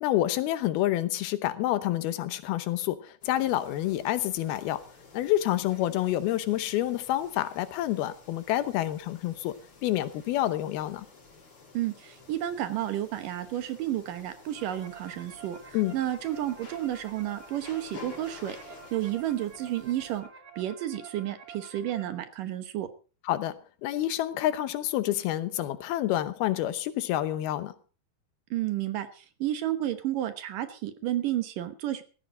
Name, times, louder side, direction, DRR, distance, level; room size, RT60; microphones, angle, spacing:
voice 1, 0.0-4.8 5.1-9.5 9.8-11.1 15.7-16.0 23.3-27.7, left 14 dB, 85° left, 2.9 m, -28 dB
sound 1, 3.2-20.2, left 4 dB, 35° left, 4.1 m, -51 dB
voice 2, 11.7-20.3 20.6-22.9 28.5-32.0, right 12 dB, 70° right, 2.6 m, -31 dB
sound 2, 14.2-22.0, right 5 dB, 30° right, 2.0 m, -49 dB
17.0 x 14.5 x 3.8 m
omnidirectional pair, 4.3 m